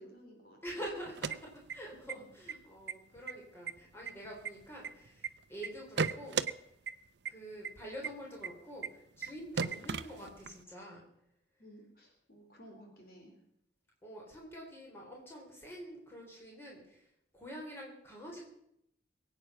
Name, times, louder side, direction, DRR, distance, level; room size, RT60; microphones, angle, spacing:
voice 1, 0.0-0.6 2.1-2.3 9.6-9.7 11.6-13.3, equal, 55° left, 2 dB, 3.1 m, -55 dB
voice 2, 0.6-6.7 7.3-11.0 14.0-18.4, equal, 15° left, -2 dB, 3.8 m, -47 dB
sound 1, 1.0-2.1 2.5-2.6 2.9-3.3 3.7-5.3 5.6-6.5 6.9-7.0 7.3-7.4 7.6-7.7 8.0-8.1 8.4-8.5 8.8-8.9 9.2-9.3 9.6-10.6, right 5 dB, 70° right, 0.6 m, -35 dB
22.5 x 8.7 x 5.6 m, 0.76 s
head